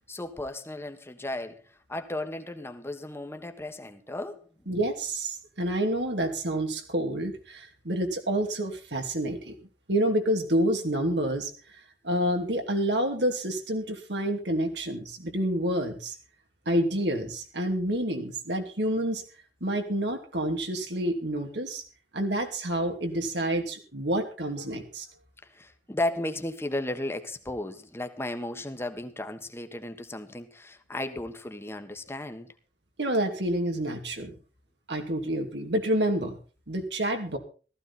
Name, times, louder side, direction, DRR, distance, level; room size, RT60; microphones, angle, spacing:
voice 1, 0.1-1.6 1.9-4.5 25.4-32.5, left 1 dB, 15° left, 1.4 m, -35 dB
voice 2, 4.7-9.5 9.9-11.5 12.0-16.1 16.7-19.2 19.6-21.8 22.1-25.1 33.0-34.4 34.9-36.4 36.7-37.4, right 1 dB, 75° right, 2.8 m, -28 dB
15.5 x 14.0 x 4.3 m
head